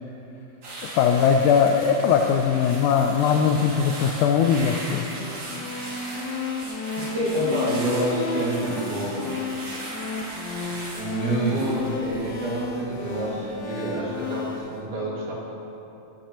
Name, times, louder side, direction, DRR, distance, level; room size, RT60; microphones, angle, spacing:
sound 1, 0.6-14.0 14.3-14.6, right 1 dB, 45° right, 2.6 m, -38 dB
voice 1, 1.0-5.1, left 7 dB, 85° left, 3 dB, 1.7 m, -20 dB
sound 2, 5.2-14.6, left 3 dB, 65° left, 1.8 m, -33 dB
voice 2, 6.9-9.4 11.0-15.3, right 1 dB, 65° right, -6 dB, 3.5 m, -27 dB
15.0 x 10.0 x 2.9 m, 2.9 s
omnidirectional pair, 3.9 m